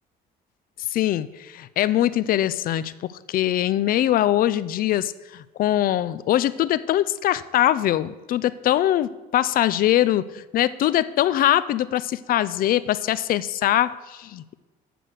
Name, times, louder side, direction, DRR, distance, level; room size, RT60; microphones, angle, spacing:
voice 1, 0.9-2.9 3.3-14.5, left 13 dB, 60° left, 16 dB, 0.5 m, -22 dB
7.6 x 6.3 x 6.7 m, 1.2 s
cardioid pair, 110°, 17 cm